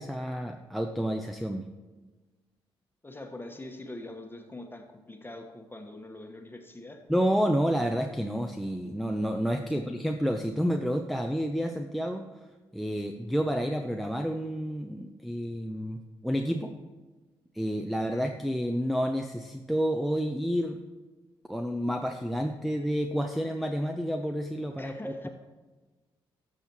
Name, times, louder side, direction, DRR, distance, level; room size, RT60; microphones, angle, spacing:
voice 1, 0.0-1.6 7.1-12.3 12.7-16.7 17.5-20.8 21.5-25.3, equal, ahead, 5 dB, 0.6 m, -29 dB
voice 2, 3.0-7.0 9.7-9.8 18.1-18.3 24.8-25.3, left 2 dB, 15° left, 4 dB, 1.4 m, -43 dB
13.0 x 6.4 x 3.1 m, 1.3 s
hypercardioid pair, 40°, 12 cm